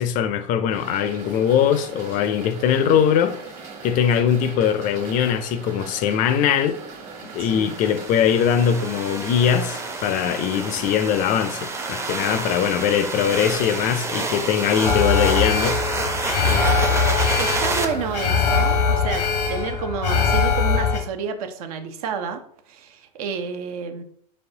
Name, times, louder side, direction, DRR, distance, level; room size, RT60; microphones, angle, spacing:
voice 1, 0.0-3.4 3.8-6.8 7.3-15.8, left 8 dB, 40° left, 0.4 m, -21 dB
sound 1, 0.7-18.8, right 4 dB, 40° right, 1.2 m, -39 dB
sound 2, 7.4-17.8, right 3 dB, 15° right, 0.6 m, -29 dB
voice 2, 7.4-7.7 16.5-22.4 22.7-24.0, right 6 dB, 65° right, 0.6 m, -30 dB
Alarm, 14.8-21.0, left 5 dB, 90° left, 0.8 m, -21 dB
4.2 x 3.2 x 2.7 m
hypercardioid pair, 90°, 20 cm